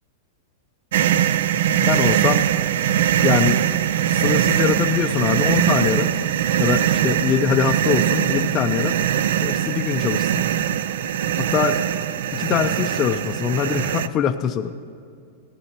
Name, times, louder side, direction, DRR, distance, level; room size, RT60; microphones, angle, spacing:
sound 1, 0.9-14.1, right 10 dB, 70° right, 0.4 m, -21 dB
voice 1, 1.8-2.4 3.2-3.8 4.1-6.1 6.6-8.9 9.4-10.5 11.4-11.8 12.3-14.7, left 8 dB, 25° left, 5 dB, 0.4 m, -23 dB
17.0 x 14.0 x 2.9 m, 2.4 s
supercardioid pair, 145°, 0 cm